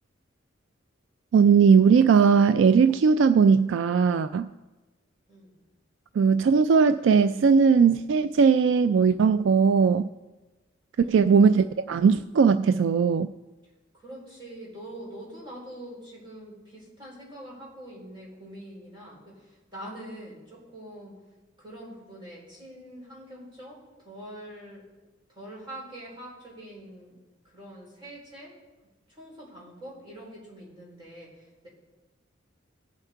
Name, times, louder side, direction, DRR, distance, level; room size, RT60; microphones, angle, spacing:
voice 1, 1.3-4.5 6.2-10.1 11.1-13.3, right 6 dB, 70° right, 0.3 m, -19 dB
voice 2, 13.9-21.2 21.6-24.9 25.3-27.2 27.5-28.6 29.1-31.7, right 1 dB, 25° right, 4.6 m, -44 dB
17.5 x 7.2 x 4.5 m
head